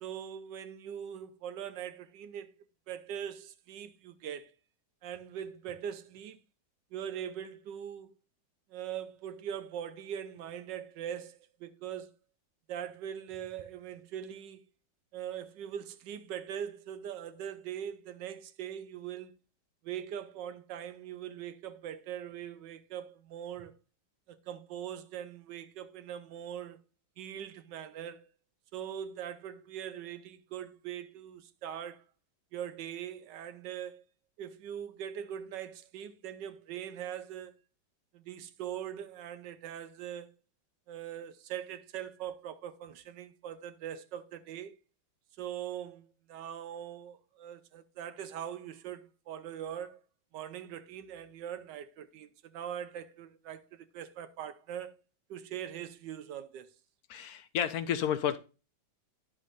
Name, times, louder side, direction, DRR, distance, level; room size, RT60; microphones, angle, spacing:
voice 1, 0.0-2.5 2.9-4.5 5.0-6.4 6.9-8.1 8.7-12.1 12.7-14.6 15.1-19.3 19.8-23.7 24.3-26.8 27.2-28.3 28.7-32.0 32.5-34.0 34.4-37.5 38.1-40.3 40.9-44.8 45.4-50.0 50.3-54.9 55.3-56.7, right 9 dB, 80° right, 1.3 m, -41 dB
voice 2, 57.1-58.4, left 9 dB, 70° left, 0.9 m, -31 dB
11.0 x 6.3 x 2.5 m
omnidirectional pair, 2.0 m